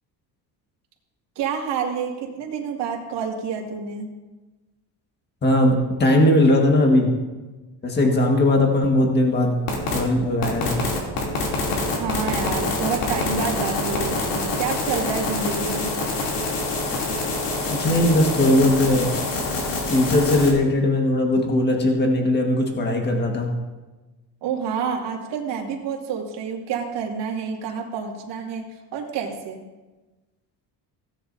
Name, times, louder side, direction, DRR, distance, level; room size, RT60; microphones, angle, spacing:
voice 1, 1.4-4.1 12.0-15.9 24.4-28.6 28.9-29.6, right 6 dB, 80° right, 0 dB, 2.3 m, -28 dB
voice 2, 5.4-7.1 7.8-9.6 9.9-10.8 17.7-19.1 19.9-23.6, left 1 dB, 25° left, 2 dB, 1.6 m, -19 dB
sound 1, 9.7-10.0 10.4-20.5, left 2 dB, 85° left, 3.0 m, -26 dB
17.0 x 9.9 x 2.7 m, 1.2 s
cardioid pair, 145°, 41 cm